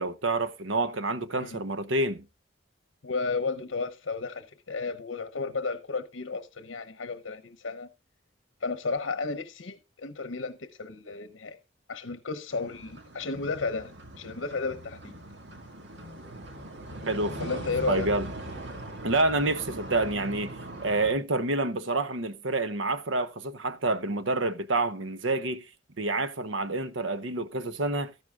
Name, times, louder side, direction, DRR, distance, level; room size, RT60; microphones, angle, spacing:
voice 1, 0.0-2.2 17.1-17.6 17.9-18.3 19.0-25.6 26.0-28.1, right 2 dB, 85° right, 0.9 m, -28 dB
voice 2, 3.0-7.9 8.6-11.6 11.9-15.1 17.4-18.1, left 4 dB, 70° left, 0.9 m, -33 dB
sound 1, 12.5-21.1, right 1 dB, 65° right, 2.0 m, -41 dB
13.5 x 11.0 x 2.4 m
head